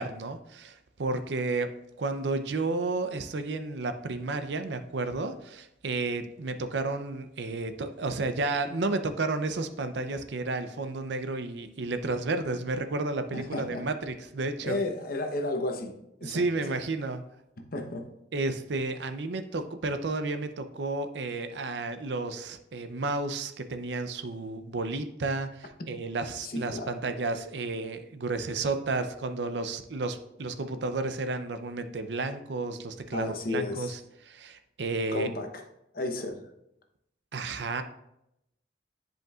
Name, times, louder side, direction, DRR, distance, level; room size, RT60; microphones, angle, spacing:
voice 1, 0.0-1.7 2.0-14.8 16.2-17.2 18.3-35.3 37.3-37.8, right 3 dB, 75° right, 9 dB, 0.6 m, -32 dB
voice 2, 13.3-13.9 14.6-16.5 17.6-18.1 26.4-26.9 33.1-33.9 35.1-35.6 35.9-36.5, left 2 dB, 55° left, 5 dB, 0.9 m, -33 dB
10.5 x 5.2 x 2.4 m, 0.83 s
head